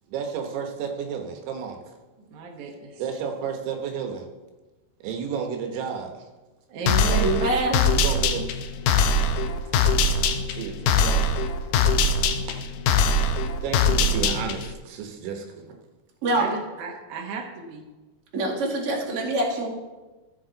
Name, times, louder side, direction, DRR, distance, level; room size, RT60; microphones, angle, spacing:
voice 1, 0.1-1.8 3.0-4.3 5.0-6.1 7.9-8.4 9.7-11.2 12.5-12.6 13.6-15.7, right 7 dB, 85° right, 3 dB, 3.1 m, -32 dB
voice 2, 2.3-3.0 6.7-7.5 16.3-17.8, right 4 dB, 65° right, 0 dB, 2.1 m, -34 dB
sound 1, 6.9-14.7, left 3 dB, 80° left, 2.5 m, -22 dB
voice 3, 7.1-7.9 16.2-16.5 18.3-19.7, right 1 dB, 40° right, -4 dB, 2.6 m, -25 dB
14.0 x 7.1 x 3.9 m, 1.2 s
omnidirectional pair, 4.6 m